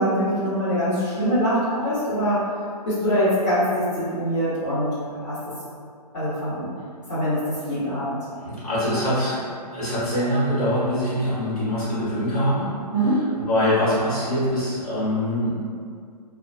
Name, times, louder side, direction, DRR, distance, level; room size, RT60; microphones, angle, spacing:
voice 1, 0.0-2.4 2.8-5.4 6.1-6.7 7.1-8.2 12.9-13.2, equal, 45° left, -15 dB, 1.0 m, -23 dB
voice 2, 8.4-12.7 13.0-15.5, equal, 60° left, -10 dB, 1.4 m, -24 dB
2.3 x 2.2 x 2.6 m, 2.2 s
figure-of-eight pair, 130°, 21 cm